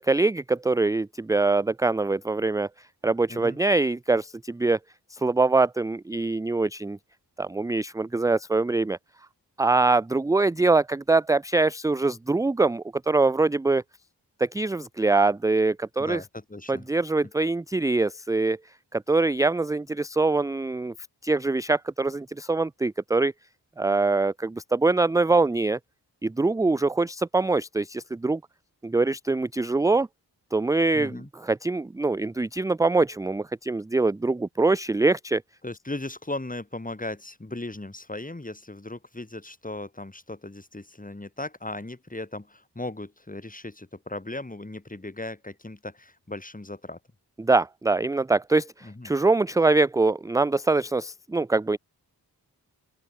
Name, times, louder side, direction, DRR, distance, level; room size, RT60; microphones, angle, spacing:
voice 1, 0.0-2.7 3.0-4.8 5.1-7.0 7.4-9.0 9.6-13.8 14.4-16.2 16.7-18.6 18.9-20.9 21.2-23.3 23.8-25.8 26.2-28.4 28.8-30.1 30.5-35.4 47.4-51.8, right 3 dB, 10° right, 0.3 m, -23 dB
voice 2, 3.3-3.6 16.0-16.9 30.9-31.3 35.6-47.0 48.8-49.1, left 2 dB, 20° left, 4.9 m, -37 dB
open air
wide cardioid pair, 90°, 40 cm